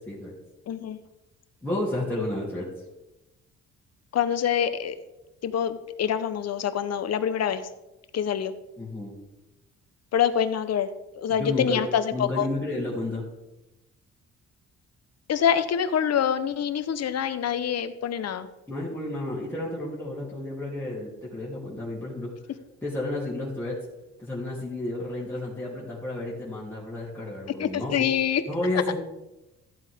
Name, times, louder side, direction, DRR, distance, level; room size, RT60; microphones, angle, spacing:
voice 1, 0.7-1.0 4.1-5.0 5.4-7.6 8.1-8.5 10.1-10.9 11.1-12.5 15.3-18.5 27.6-28.4 28.9-29.0, left 8 dB, 55° left, 11 dB, 1.0 m, -25 dB
voice 2, 1.6-2.7 8.8-9.1 11.3-13.2 18.7-22.3 22.8-23.8 24.2-28.0 28.5-28.9, left 1 dB, 5° left, -7 dB, 3.1 m, -31 dB
14.0 x 8.2 x 3.6 m, 1.0 s
cardioid pair, 90°, 30 cm